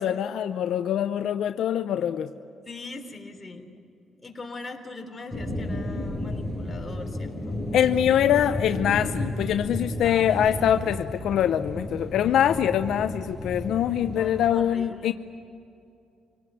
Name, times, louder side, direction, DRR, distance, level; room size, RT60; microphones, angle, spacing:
voice 1, 0.0-2.3 7.7-15.1, left 10 dB, 75° left, 9 dB, 0.7 m, -24 dB
voice 2, 2.7-3.7 4.2-7.7 10.0-10.5 14.1-15.1, left 3 dB, 25° left, 3 dB, 3.5 m, -41 dB
Distant Thunder Rumble Ambience, 5.3-14.5, left 1 dB, 15° right, 6.4 m, -33 dB
26.0 x 18.5 x 9.4 m, 2.6 s
cardioid pair, 90°, 0 cm